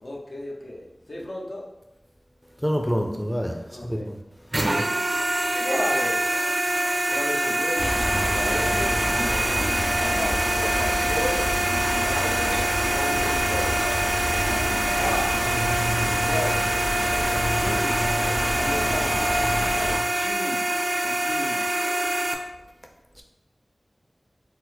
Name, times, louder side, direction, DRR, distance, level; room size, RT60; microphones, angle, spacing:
voice 1, 0.0-1.7 3.7-4.1 5.5-6.2 7.0-9.0 10.0-11.6 11.9-14.0 15.0-15.4 16.2-16.8 17.5-18.1 18.5-19.4 20.1-20.7 21.0-21.7, left 1 dB, 65° left, -3 dB, 0.8 m, -34 dB
voice 2, 2.6-3.6 3.8-4.2, equal, 5° left, 2 dB, 0.5 m, -26 dB
sound 1, 4.5-22.3, right 1 dB, 45° right, 0.4 m, -25 dB
sound 2, 7.8-20.0, equal, 85° left, 1.3 m, -27 dB
4.3 x 2.1 x 4.2 m, 0.91 s
wide cardioid pair, 45°, 0 cm